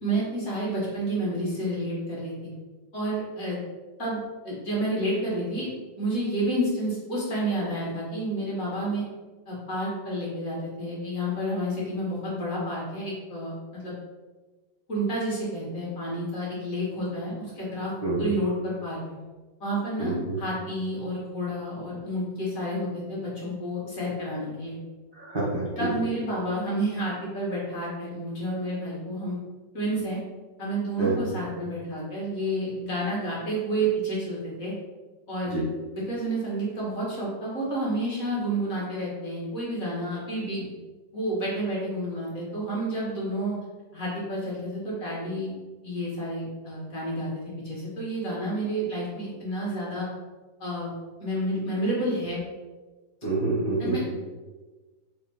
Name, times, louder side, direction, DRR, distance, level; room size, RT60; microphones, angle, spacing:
voice 1, 0.0-2.3 2.9-3.6 4.0-4.2 4.4-5.7 6.0-9.0 9.5-13.9 14.9-17.9 18.2-19.0 19.6-24.8 25.8-29.4 29.7-30.2 30.6-34.7 35.3-35.6 35.9-40.7 41.1-43.6 43.9-45.5 45.8-50.1 50.6-50.9 51.2-52.4 53.8-54.1, right 1 dB, 45° left, -6 dB, 2.5 m, -30 dB
voice 2, 20.0-20.4 25.2-25.7 31.0-31.2 35.5-35.6 53.2-54.0, right 3 dB, 30° right, -7 dB, 1.7 m, -27 dB
6.6 x 3.8 x 4.3 m, 1.3 s
omnidirectional pair, 2.0 m